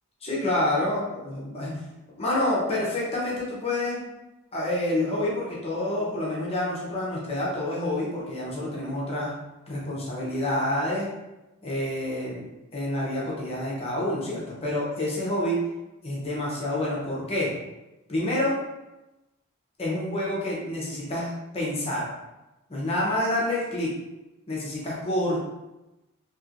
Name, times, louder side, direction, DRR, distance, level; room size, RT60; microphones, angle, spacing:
voice 1, 0.2-1.7 2.2-4.0 4.5-9.3 9.7-11.1 11.6-12.5 12.7-15.6 16.0-17.5 18.1-18.5 19.8-22.1 22.7-23.9 24.5-25.4, left 1 dB, 25° left, -5 dB, 0.7 m, -28 dB
3.0 x 2.8 x 2.5 m, 0.99 s
head